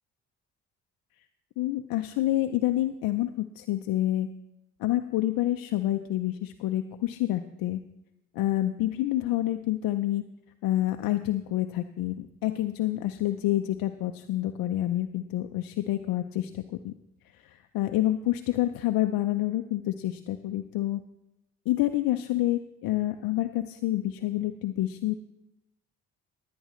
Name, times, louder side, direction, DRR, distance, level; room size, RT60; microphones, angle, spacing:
voice 1, 1.6-4.3 4.8-7.8 8.4-10.2 10.6-16.9 17.7-21.0 21.7-25.1, left 14 dB, 70° left, 7 dB, 0.6 m, -28 dB
16.5 x 9.4 x 3.1 m, 0.86 s
hypercardioid pair, 55°, 36 cm